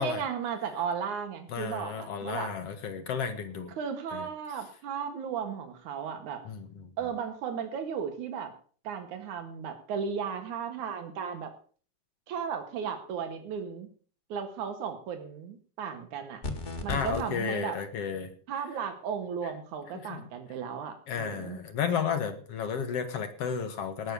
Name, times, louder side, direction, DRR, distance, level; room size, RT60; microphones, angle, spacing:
voice 1, 0.0-2.5 3.8-6.4 7.0-8.5 8.8-11.5 12.3-13.9 14.3-16.4 16.8-17.8 18.5-21.6, right 7 dB, 80° right, 7 dB, 3.2 m, -35 dB
voice 2, 1.5-3.7 4.1-4.3 6.5-6.9 16.9-18.3 20.1-20.2 21.1-24.1, left 7 dB, 55° left, 8 dB, 2.3 m, -33 dB
sound 1, 16.4-17.2, left 2 dB, 25° left, 2.0 m, -34 dB
18.5 x 6.6 x 6.8 m, 0.43 s
omnidirectional pair, 3.4 m